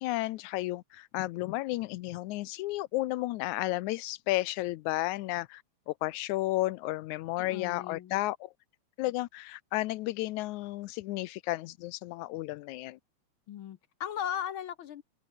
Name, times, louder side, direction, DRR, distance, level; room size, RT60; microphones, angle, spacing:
voice 1, 0.0-5.6 5.9-8.5 9.0-13.0, left 18 dB, 85° left, 2.1 m, -33 dB
voice 2, 7.4-8.2 13.5-15.0, left 9 dB, 70° left, 1.2 m, -37 dB
open air
omnidirectional pair, 3.4 m